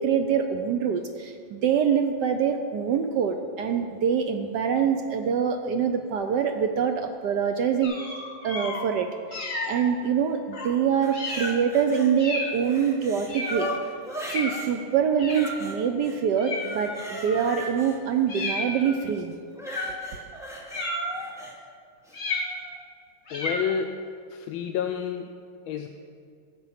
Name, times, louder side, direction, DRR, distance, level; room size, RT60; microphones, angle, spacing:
voice 1, 0.0-7.9 8.4-13.7 14.3-19.3, right 7 dB, 70° right, 6 dB, 1.1 m, -25 dB
sound 1, 7.8-8.8 9.3-9.8 10.5-10.7 11.1-11.6 12.2-12.6 13.3-13.7 14.2-14.6 15.2-15.7 16.4-17.7 18.3-19.0 19.7-20.1 20.7-21.3 22.1-22.8 23.3-23.7, left 2 dB, 40° left, 1.9 m, -32 dB
sound 2, 11.0-12.1 12.5-14.7 15.3-16.2 16.5-18.5 19.5-21.5 22.0-22.2, equal, ahead, 1.2 m, -39 dB
voice 2, 23.3-25.3 25.7-25.9, left 7 dB, 80° left, 5 dB, 1.4 m, -30 dB
13.0 x 8.1 x 5.7 m, 2.3 s
omnidirectional pair, 2.3 m